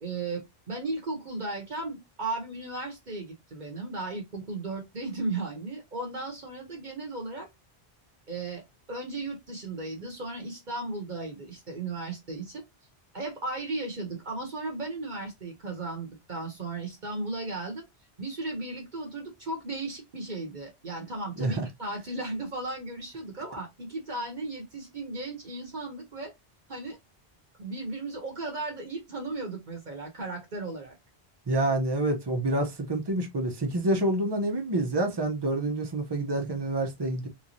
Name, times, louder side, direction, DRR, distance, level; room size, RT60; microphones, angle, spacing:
voice 1, 0.0-7.5 8.3-8.6 8.9-12.6 13.1-17.9 18.2-26.3 26.7-27.0 27.6-31.0, right 2 dB, 50° right, 1.0 m, -35 dB
voice 2, 31.5-37.3, right 1 dB, 25° right, 0.7 m, -27 dB
3.4 x 3.1 x 2.6 m
omnidirectional pair, 1.0 m